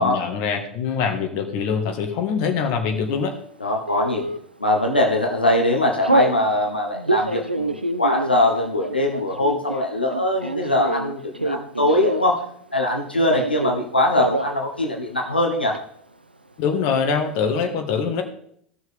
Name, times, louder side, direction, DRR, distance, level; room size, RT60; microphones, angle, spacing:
voice 1, 0.0-3.3 16.6-18.2, left 6 dB, 50° left, 5 dB, 1.7 m, -23 dB
voice 2, 3.6-4.3 4.6-12.4 12.7-15.8, left 1 dB, 85° left, 1 dB, 1.2 m, -22 dB
Telephone, 3.9-4.4 5.0-5.2 5.5-6.4 6.9-12.4 12.7-13.8 14.1-14.5 14.8-14.9 15.2-15.8, right 2 dB, 90° right, 0.5 m, -26 dB
16.0 x 6.4 x 3.5 m, 0.67 s
figure-of-eight pair, 80°, 5 cm